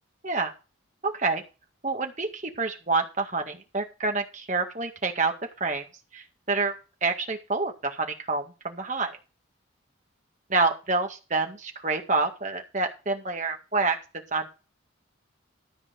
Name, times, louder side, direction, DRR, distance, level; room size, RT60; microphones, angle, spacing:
voice 1, 1.0-1.4 1.8-5.3 5.6-5.8 6.1-6.7 7.0-9.2 10.5-14.0 14.3-14.5, right 3 dB, 35° right, 4 dB, 1.9 m, -27 dB
13.0 x 4.5 x 7.7 m, 0.30 s
head